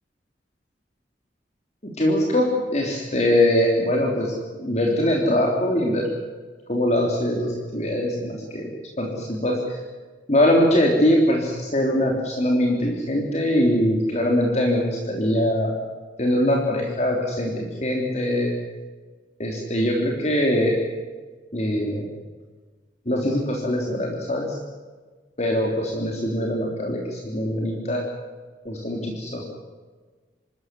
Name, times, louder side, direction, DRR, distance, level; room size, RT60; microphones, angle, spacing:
voice 1, 1.8-6.2 6.7-8.7 9.0-9.8 10.3-15.7 16.2-18.5 19.4-20.8 21.5-22.1 23.0-24.6 25.4-28.1 28.6-29.5, left 1 dB, 40° left, 0 dB, 3.4 m, -22 dB
26.0 x 14.0 x 9.7 m, 1.4 s
head